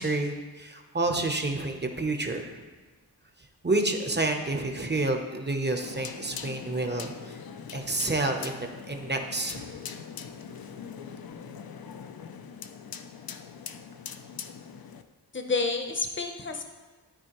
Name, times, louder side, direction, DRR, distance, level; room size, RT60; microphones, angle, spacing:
voice 1, 0.0-2.6 3.6-7.4 7.7-9.7, right 2 dB, 25° right, 4 dB, 0.8 m, -29 dB
sound 1, 5.8-15.0, left 7 dB, 65° left, 0.5 m, -42 dB
voice 2, 15.3-16.6, left 4 dB, 30° left, 5 dB, 0.8 m, -29 dB
12.5 x 4.3 x 3.0 m, 1.3 s
wide cardioid pair, 65°, 40 cm